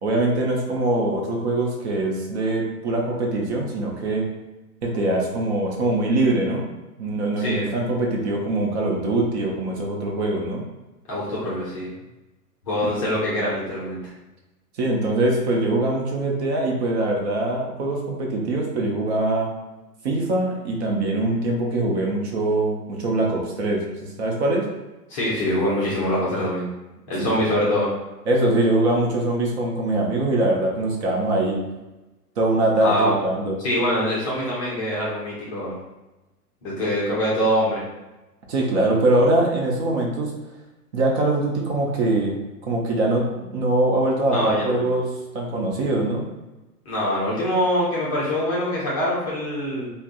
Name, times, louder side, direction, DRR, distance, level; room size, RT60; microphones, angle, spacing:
voice 1, 0.0-4.3 4.8-6.7 7.0-10.6 14.8-19.5 20.0-24.7 27.2-27.4 28.3-31.6 32.4-33.6 38.5-40.3 40.9-42.4 42.7-43.3 43.5-45.1 45.3-46.3, right 2 dB, 45° right, -1 dB, 0.7 m, -23 dB
voice 2, 7.4-7.7 11.1-11.9 12.7-14.1 25.1-26.6 27.1-27.9 32.8-33.2 33.6-35.8 36.6-37.8 44.3-44.9 46.9-49.9, equal, 20° left, -6 dB, 0.5 m, -24 dB
3.3 x 2.1 x 2.6 m, 1.1 s
figure-of-eight pair, 115°, 48 cm